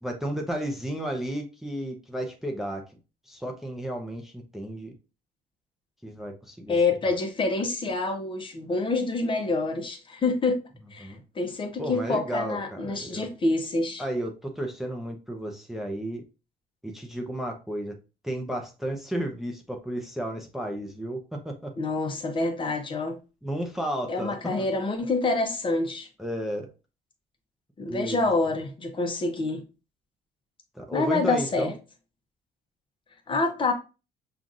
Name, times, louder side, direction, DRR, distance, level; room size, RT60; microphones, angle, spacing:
voice 1, 0.0-2.8 3.3-4.9 6.0-6.8 11.0-11.2 11.8-13.3 14.0-16.2 16.8-18.0 18.2-21.7 23.4-24.7 26.2-26.7 27.9-28.3 30.7-31.8, right 1 dB, ahead, 0.7 m, -33 dB
voice 2, 6.7-10.6 10.9-14.0 21.8-23.2 24.1-26.1 27.8-29.6 30.9-31.7 33.3-33.7, left 3 dB, 30° left, 0.8 m, -27 dB
5.7 x 2.4 x 2.5 m
cardioid pair, 110°, 17 cm